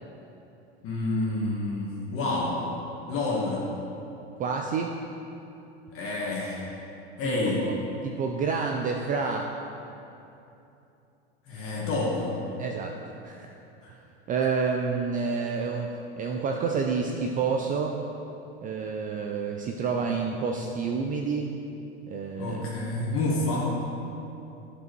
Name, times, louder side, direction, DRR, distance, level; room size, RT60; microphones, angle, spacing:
voice 1, 0.8-2.6 3.1-3.6 5.9-6.7 7.2-7.6 11.5-12.3 13.8-13.9 22.4-23.7, left 2 dB, 45° left, -5 dB, 1.7 m, -28 dB
voice 2, 4.4-4.9 7.2-7.7 8.0-9.5 12.6-12.9 13.2-13.5 14.3-15.9 16.2-18.0 18.6-21.5 22.1-22.7, right 5 dB, 25° right, 2 dB, 0.4 m, -29 dB
9.7 x 5.3 x 4.6 m, 2.8 s
supercardioid pair, 120°, 32 cm